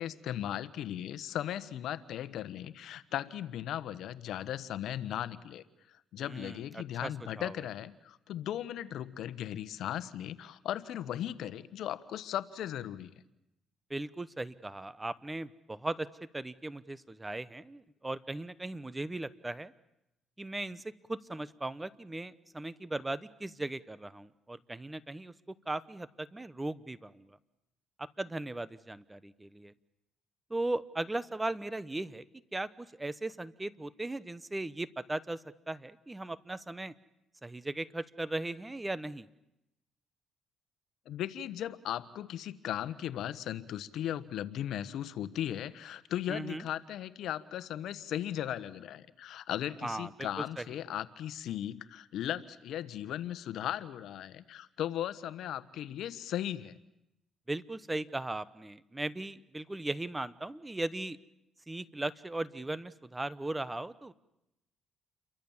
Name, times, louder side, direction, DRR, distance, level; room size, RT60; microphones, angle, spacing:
voice 1, 0.0-13.1 41.1-56.7, left 11 dB, 75° left, 15 dB, 1.3 m, -37 dB
voice 2, 6.2-7.1 7.3-7.5 13.9-16.1 16.3-19.7 20.4-20.8 21.1-25.3 25.7-27.4 28.0-29.7 30.5-32.2 32.5-35.4 35.7-36.9 37.4-39.3 46.3-46.7 49.8-50.6 57.5-61.2 61.7-64.1, right 2 dB, 15° right, 16 dB, 1.1 m, -38 dB
29.5 x 23.5 x 7.4 m, 0.86 s
cardioid pair, 85°, 0 cm